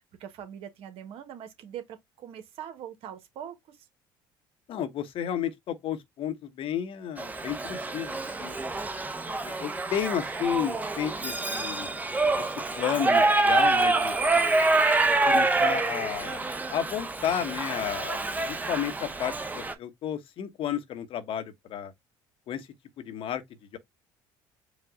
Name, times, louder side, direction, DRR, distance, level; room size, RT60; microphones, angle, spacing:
voice 1, 0.2-3.8, right 9 dB, 65° right, 1.3 m, -42 dB
voice 2, 4.7-8.6 9.4-11.9 12.4-12.5 12.8-14.1 15.2-16.4 16.7-18.2 18.4-21.9 22.5-22.7 23.0-23.4 23.7-23.8, left 9 dB, 60° left, 0.9 m, -32 dB
Shout / Livestock farm animals working animals, 7.2-19.7, right 3 dB, 15° right, 0.8 m, -26 dB
5.0 x 2.4 x 3.6 m
supercardioid pair, 80°, 11 cm